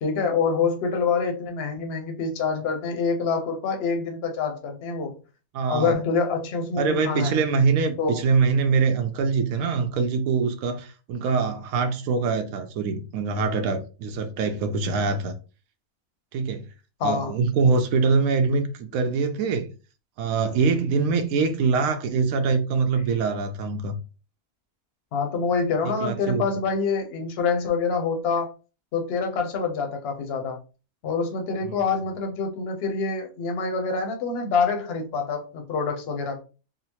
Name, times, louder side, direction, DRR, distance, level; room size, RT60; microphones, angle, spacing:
voice 1, 0.0-5.1 5.7-7.4 8.0-8.2 17.0-17.3 25.1-28.5 28.9-30.6 31.0-36.4, left 5 dB, 50° left, 0.8 m, -26 dB
voice 2, 5.5-6.0 6.8-15.3 16.3-16.6 17.0-19.7 20.2-24.0 25.8-26.4 31.6-31.8, right 4 dB, 75° right, 1.0 m, -24 dB
3.8 x 2.0 x 2.8 m
omnidirectional pair, 1.5 m